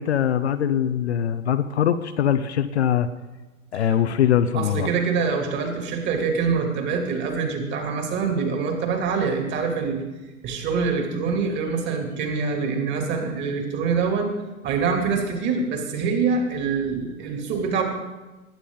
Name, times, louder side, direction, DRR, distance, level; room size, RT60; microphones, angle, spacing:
voice 1, 0.0-3.1 3.7-4.9, left 9 dB, 50° left, 11 dB, 0.8 m, -22 dB
voice 2, 4.5-10.0 10.4-14.3 14.6-17.8, right 5 dB, 25° right, 3 dB, 2.8 m, -25 dB
20.0 x 9.8 x 3.9 m, 1.1 s
figure-of-eight pair, 110°, 42 cm